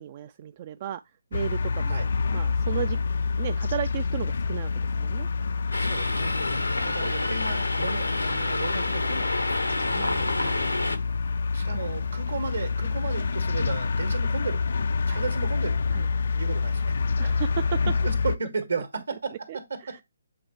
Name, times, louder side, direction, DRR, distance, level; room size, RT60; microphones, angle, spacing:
voice 1, 0.0-2.1 2.3-3.0 3.4-5.3 9.9-10.8 11.5-11.8 15.1-15.2 15.9-16.1 17.2-17.8 19.5-20.0, right 11 dB, 35° right, 0.3 m, -35 dB
sound 1, 1.3-18.4, left 4 dB, 60° left, 0.4 m, -27 dB
sound 2, 5.7-11.0, left 2 dB, 85° left, 0.9 m, -28 dB
voice 2, 5.8-9.3 11.5-14.6 15.1-15.8 16.4-16.9 18.0-19.3 19.7-20.0, right 4 dB, 70° right, 1.7 m, -34 dB
7.6 x 4.0 x 3.2 m
figure-of-eight pair, 140°, 0 cm